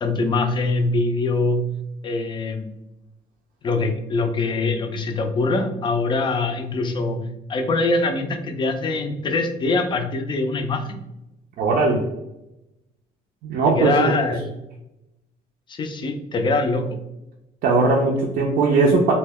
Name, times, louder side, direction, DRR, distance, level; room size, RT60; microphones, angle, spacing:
voice 1, 0.0-1.8 2.0-2.7 3.6-11.0 13.7-14.4 15.7-16.9, left 3 dB, 30° left, 6 dB, 0.4 m, -23 dB
voice 2, 11.6-12.0 13.4-14.1 17.6-19.1, right 3 dB, 65° right, -2 dB, 0.5 m, -19 dB
2.2 x 2.1 x 3.4 m, 0.90 s
cardioid pair, 110°, 17 cm